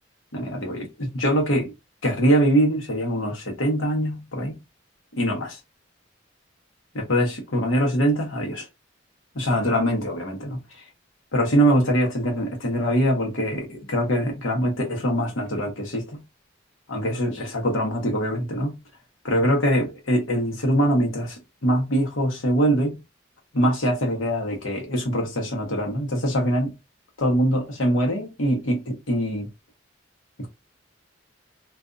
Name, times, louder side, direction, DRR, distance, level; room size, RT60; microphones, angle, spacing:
voice 1, 0.3-1.7 2.0-4.6 5.1-5.6 6.9-8.6 9.3-10.6 11.3-16.2 16.9-18.8 19.2-21.4 21.6-23.0 23.5-26.7 27.2-29.5 30.4-30.5, equal, 85° left, 1.0 m, -23 dB
2.5 x 2.4 x 2.4 m
head